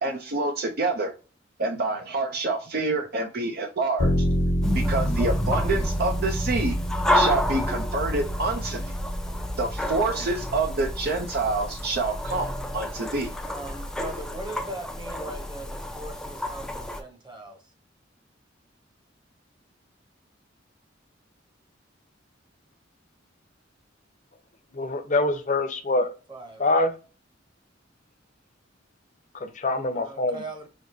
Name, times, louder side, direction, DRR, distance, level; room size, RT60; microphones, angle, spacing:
voice 1, 0.0-1.1 1.6-4.3 4.7-6.8 7.1-8.9 9.6-13.3, right 3 dB, 55° right, 0.6 m, -27 dB
sound 1, 4.0-13.7, equal, 80° left, 1.0 m, -29 dB
sound 2, 4.6-17.0, left 1 dB, 5° left, 0.4 m, -30 dB
voice 2, 13.4-17.6 26.3-26.6 29.9-30.7, right 1 dB, 25° right, 1.0 m, -39 dB
voice 3, 24.7-26.1 26.6-26.9 29.3-30.4, left 2 dB, 40° left, 0.7 m, -25 dB
5.1 x 2.8 x 2.7 m
head